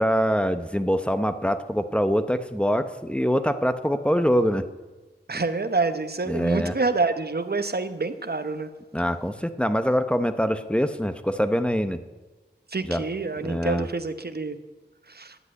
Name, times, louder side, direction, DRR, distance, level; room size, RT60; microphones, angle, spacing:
voice 1, 0.0-4.6 6.3-6.8 8.9-12.0 12.8-13.0 13.4-13.9, equal, 5° left, 10 dB, 0.8 m, -24 dB
voice 2, 5.3-8.7 12.7-14.6 15.1-15.4, right 3 dB, 55° right, 10 dB, 1.0 m, -27 dB
11.0 x 8.1 x 9.5 m, 1.2 s
wide cardioid pair, 60°, 19 cm